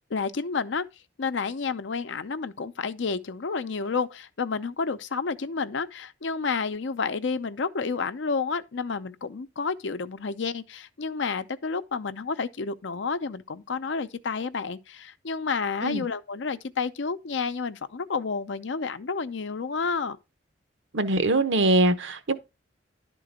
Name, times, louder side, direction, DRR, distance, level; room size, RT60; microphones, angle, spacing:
voice 1, 0.1-0.8 1.2-20.2, left 5 dB, 75° left, 0.6 m, -30 dB
voice 2, 20.9-22.3, right 2 dB, 75° right, 0.9 m, -22 dB
11.0 x 3.8 x 5.0 m
head